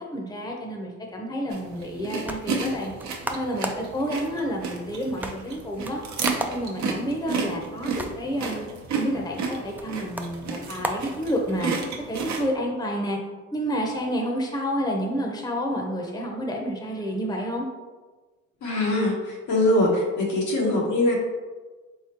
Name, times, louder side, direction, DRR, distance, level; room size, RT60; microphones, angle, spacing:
voice 1, 0.0-2.9 3.3-6.0 6.5-8.7 8.9-11.7 12.1-13.2 13.5-17.7, equal, 15° left, 0 dB, 0.7 m, -29 dB
sound 1, 1.5-12.4, right 4 dB, 70° right, 0.8 m, -32 dB
sound 2, 1.9-11.8, right 1 dB, 5° right, 0.3 m, -37 dB
voice 2, 18.6-21.1, left 1 dB, 80° left, -2 dB, 1.2 m, -22 dB
4.1 x 3.7 x 2.9 m, 1.3 s
cardioid pair, 90°, 30 cm